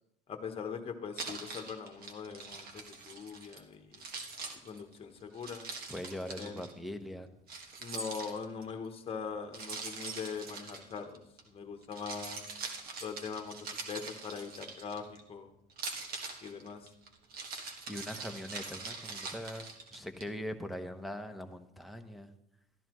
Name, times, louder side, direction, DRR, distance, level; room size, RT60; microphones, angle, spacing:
voice 1, 0.3-4.0 4.6-5.7 6.3-6.6 7.8-12.4 13.0-15.5 16.4-16.9, left 6 dB, 30° left, 6 dB, 1.1 m, -42 dB
Keys jangling, 1.2-3.6 3.9-6.7 7.5-8.7 9.5-11.4 11.8-15.2 15.7-20.2, right 4 dB, 55° right, 1.6 m, -43 dB
voice 2, 5.9-7.3 17.9-19.6 19.9-22.3, left 1 dB, ahead, 4 dB, 0.9 m, -41 dB
12.5 x 11.0 x 3.1 m, 0.82 s
cardioid pair, 115°, 18 cm